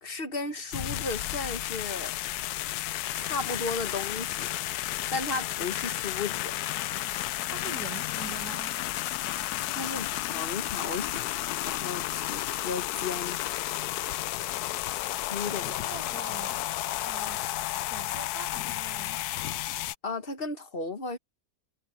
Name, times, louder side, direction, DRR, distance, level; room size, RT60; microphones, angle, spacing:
voice 1, 0.0-2.1 3.1-4.5 5.1-6.5 9.7-13.4 15.3-15.7 20.0-21.2, left 3 dB, 40° left, 1.4 m, -35 dB
sound 1, 0.7-20.0, left 15 dB, 80° left, 1.1 m, -32 dB
voice 2, 7.5-8.8 15.4-16.6 17.0-17.4 17.9-19.3, right 6 dB, 85° right, 2.3 m, -44 dB
omnidirectional pair, 1.7 m